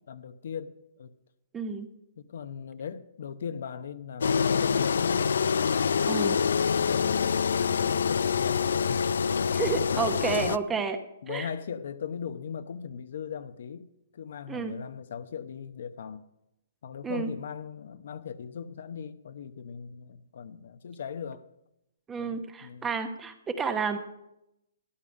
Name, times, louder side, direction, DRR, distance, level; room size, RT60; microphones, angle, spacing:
voice 1, 0.1-1.1 2.2-5.4 6.0-7.6 7.9-9.5 9.9-10.3 10.7-10.8 11.2-13.9 14.1-16.2 16.8-21.5 22.2-22.9, left 7 dB, 65° left, 0.8 m, -39 dB
voice 2, 1.5-1.9 6.1-6.4 9.5-11.0 11.3-11.5 14.5-14.8 17.0-17.3 22.1-24.0, right 5 dB, 10° right, 0.9 m, -30 dB
Engine, 4.2-10.6, left 6 dB, 80° left, 0.4 m, -26 dB
13.0 x 10.5 x 5.3 m
hypercardioid pair, 155°, 0 cm